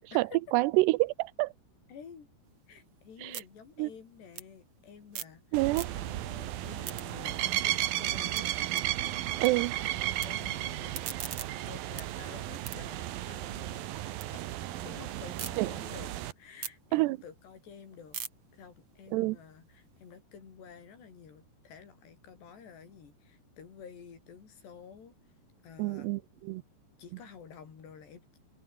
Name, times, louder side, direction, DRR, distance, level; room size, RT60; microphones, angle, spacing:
voice 1, 0.2-1.5 3.2-3.4 3.8-3.9 5.5-5.9 9.4-9.7 15.6-15.7 16.9-17.2 19.1-19.4 25.8-26.6, right 21 dB, 85° right, 2.8 m, -27 dB
voice 2, 1.9-2.3 2.7-8.6 9.0-9.6 10.2-11.1 11.6-13.9 14.3-14.4 14.8-18.2 18.5-25.2 25.6-26.2 27.0-28.2, left 7 dB, 75° left, 6.6 m, -51 dB
sound 1, 2.4-5.4 5.7-6.3 6.6-9.5 9.8-10.3 10.7-14.3 14.7-15.5 16.0-20.1, right 8 dB, 45° right, 2.5 m, -45 dB
sound 2, 5.5-16.3, right 14 dB, 70° right, 2.7 m, -34 dB
open air
omnidirectional pair, 4.9 m